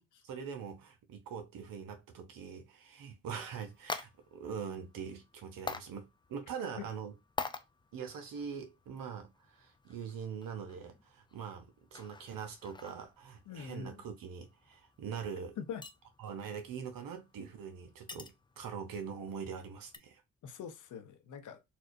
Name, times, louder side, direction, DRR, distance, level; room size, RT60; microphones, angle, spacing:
voice 1, 0.2-7.1 7.9-11.7 11.9-15.6 16.2-20.2, right 6 dB, 60° right, 0.8 m, -43 dB
sound 1, 3.3-20.0, left 4 dB, 15° left, 0.4 m, -48 dB
voice 2, 13.5-14.0 15.6-15.8 18.1-18.2 20.4-21.6, left 7 dB, 55° left, 0.7 m, -43 dB
4.2 x 2.3 x 2.6 m
hypercardioid pair, 45°, 37 cm